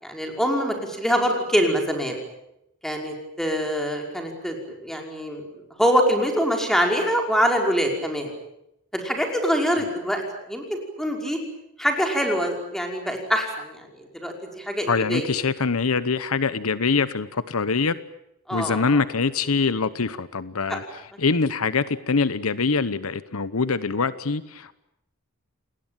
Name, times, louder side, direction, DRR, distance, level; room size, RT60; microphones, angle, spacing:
voice 1, 0.0-2.2 2.8-5.4 5.8-8.3 8.9-10.2 10.5-10.6 11.0-11.4 11.8-15.3 18.5-19.0 20.7-20.8, equal, ahead, 2 dB, 5.4 m, -24 dB
voice 2, 14.9-18.0 18.5-24.7, left 4 dB, 75° left, 15 dB, 1.0 m, -24 dB
29.0 x 20.0 x 9.2 m, 0.84 s
head